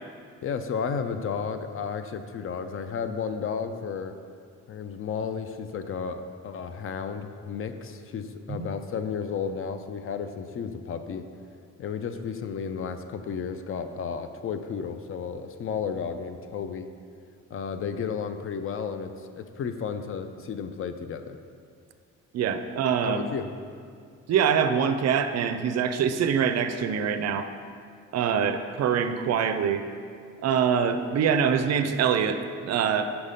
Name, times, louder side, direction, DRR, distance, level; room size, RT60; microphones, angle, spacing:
voice 1, 0.4-4.1 4.7-11.3 11.8-16.9 17.5-21.4 23.0-23.5, left 6 dB, 45° left, 9 dB, 0.4 m, -33 dB
voice 2, 22.3-23.2 24.3-27.5 28.1-29.8 30.4-33.1, right 7 dB, 60° right, 9 dB, 0.4 m, -24 dB
5.7 x 4.1 x 5.0 m, 2.2 s
cardioid pair, 90°, 30 cm